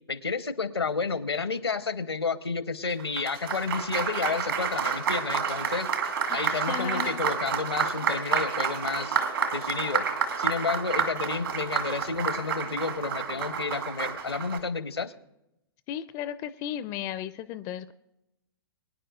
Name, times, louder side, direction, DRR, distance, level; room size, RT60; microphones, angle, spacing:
voice 1, 0.1-5.9 6.3-9.2 9.5-10.0 10.4-15.1, left 4 dB, 85° left, 13 dB, 0.9 m, -31 dB
Applause, 2.9-14.6, right 6 dB, 65° right, 2.2 m, -29 dB
voice 2, 6.3-7.2 15.9-17.9, left 10 dB, 25° left, 14 dB, 0.4 m, -35 dB
23.5 x 10.0 x 2.4 m, 0.88 s
figure-of-eight pair, 110°, 13 cm